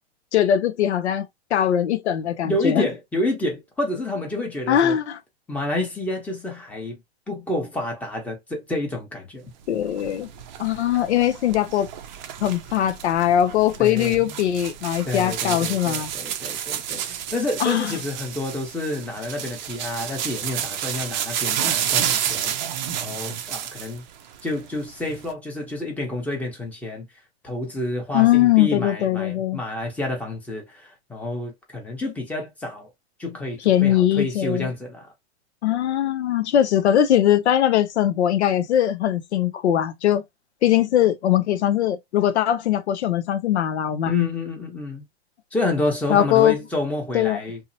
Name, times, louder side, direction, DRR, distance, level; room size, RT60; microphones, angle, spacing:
voice 1, 0.3-1.2 1.5-2.9 4.7-5.2 9.7-10.3 10.6-11.9 12.4-16.1 17.6-17.9 28.1-29.6 33.7-34.7 35.6-40.2 40.6-44.1 46.1-46.6 47.1-47.4, left 11 dB, 85° left, 0.5 m, -20 dB
voice 2, 2.4-5.0 5.5-7.0 7.3-9.5 13.8-14.4 15.0-22.5 22.9-24.0 24.4-27.1 27.4-32.9 33.2-35.1 44.1-45.0 45.5-47.6, left 2 dB, 5° left, 0.8 m, -29 dB
sound 1, 9.7-24.0 24.3-25.3, right 10 dB, 45° right, 0.5 m, -30 dB
2.8 x 2.0 x 2.6 m
hypercardioid pair, 130°, 33 cm